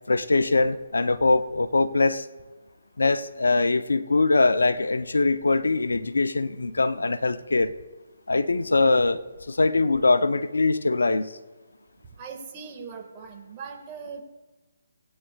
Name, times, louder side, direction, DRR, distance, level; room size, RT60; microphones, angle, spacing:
voice 1, 0.1-2.3 3.0-7.7 8.3-9.2 9.5-11.3, left 3 dB, 80° left, 12 dB, 0.6 m, -22 dB
voice 2, 12.2-14.2, right 5 dB, 30° right, 2 dB, 1.8 m, -40 dB
20.0 x 8.8 x 2.4 m, 1.1 s
figure-of-eight pair, 145°, 0 cm